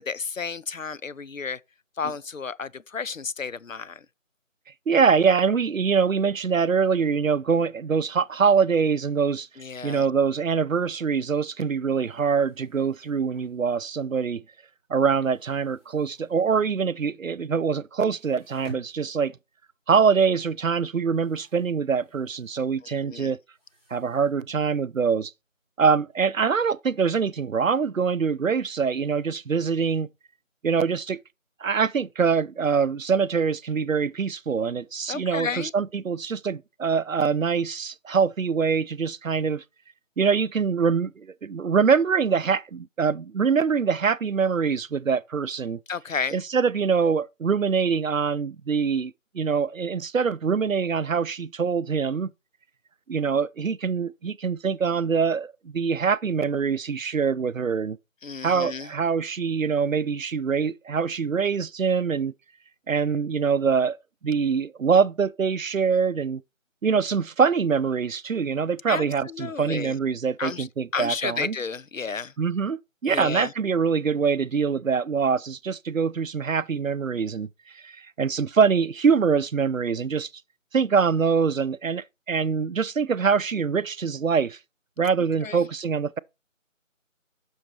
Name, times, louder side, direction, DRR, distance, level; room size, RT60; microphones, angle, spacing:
voice 1, 0.0-1.6 2.0-4.1 9.6-10.1 22.8-23.3 35.1-35.7 45.9-46.4 58.2-58.9 68.9-70.0 70.4-70.7 70.9-72.3 73.1-73.5 85.4-85.7, left 5 dB, 75° left, 0.6 m, -32 dB
voice 2, 4.9-9.5 9.8-14.4 14.9-19.3 19.9-23.4 23.9-25.3 25.8-30.1 30.6-31.2 31.6-39.6 40.2-45.8 46.3-52.3 53.1-58.0 58.4-62.3 62.9-64.0 64.2-66.4 66.8-71.5 72.4-77.5 77.7-80.3 80.7-84.6 85.0-86.2, right 6 dB, 80° right, 0.6 m, -24 dB
sound 1, 11.7-14.3 14.6-16.7 17.0-17.1 17.5-17.6 17.9-26.2, right 3 dB, 10° right, 4.7 m, -53 dB
8.0 x 6.4 x 4.2 m
figure-of-eight pair, 175°, 40 cm